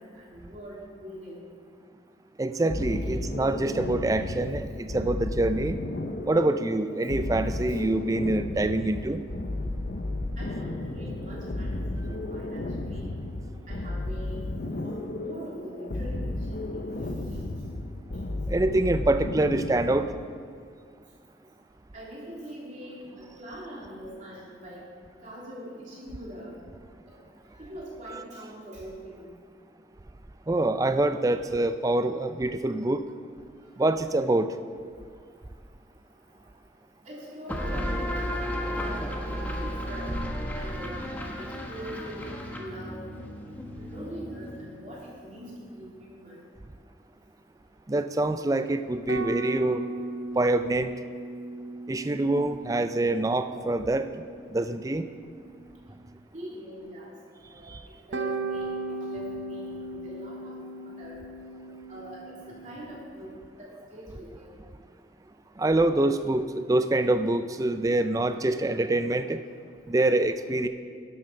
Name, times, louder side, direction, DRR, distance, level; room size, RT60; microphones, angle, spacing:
voice 1, 0.0-1.5 7.7-7.8 10.4-13.1 13.7-14.5 14.8-16.7 16.9-17.5 21.9-24.8 25.2-26.6 27.1-27.2 27.5-29.3 37.0-40.2 40.6-43.0 43.8-46.4 56.3-57.1 57.5-58.7 59.0-60.5 60.8-61.2 61.9-63.3 63.6-64.6, equal, 40° right, -6 dB, 3.1 m, -43 dB
voice 2, 2.4-5.8 6.3-9.2 18.5-20.1 30.5-33.0 33.8-34.5 47.9-49.8 50.4-50.9 51.9-54.1 54.5-55.0 57.7-57.8 65.6-69.4 69.9-70.7, right 2 dB, 20° right, 10 dB, 0.4 m, -25 dB
sound 1, 2.7-20.3, left 2 dB, 55° left, 0.6 m, -33 dB
sound 2, 37.5-44.8, equal, 10° left, 1.0 m, -33 dB
sound 3, 49.1-55.8 58.1-63.0, right 2 dB, 85° right, 0.7 m, -37 dB
12.0 x 7.2 x 5.7 m, 2.2 s
head